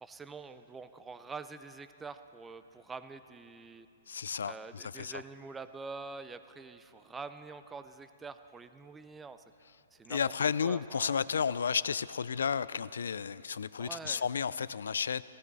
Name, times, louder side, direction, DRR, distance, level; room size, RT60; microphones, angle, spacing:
voice 1, 0.0-3.9 4.4-9.4 9.9-10.4 10.6-11.2 11.5-11.6 13.8-14.3, right 4 dB, 10° right, 11 dB, 0.3 m, -46 dB
voice 2, 4.1-5.2 10.1-15.2, left 6 dB, 90° left, 18 dB, 0.3 m, -32 dB
16.0 x 13.0 x 4.0 m, 2.8 s
hypercardioid pair, 160°, 0 cm